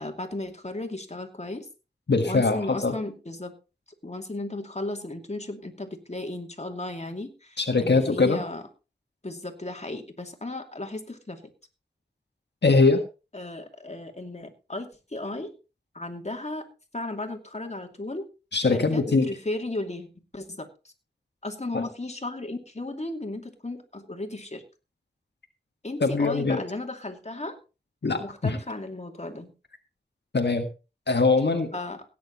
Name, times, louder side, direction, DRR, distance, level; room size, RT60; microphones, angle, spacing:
voice 1, 0.0-1.7 2.2-3.5 4.0-8.6 9.2-11.4 13.3-15.5 15.9-16.7 16.9-18.3 18.7-20.1 20.3-20.7 21.4-24.6 25.8-27.6 28.2-29.5 31.7-32.0, left 2 dB, 40° left, 4 dB, 2.6 m, -35 dB
voice 2, 2.1-2.9 7.6-8.4 12.6-13.0 18.5-19.3 21.7-21.9 26.0-26.6 28.0-28.6 30.3-30.7 31.1-31.7, left 3 dB, 85° left, 5 dB, 1.6 m, -22 dB
17.0 x 9.4 x 4.0 m, 0.31 s
wide cardioid pair, 55°, 17 cm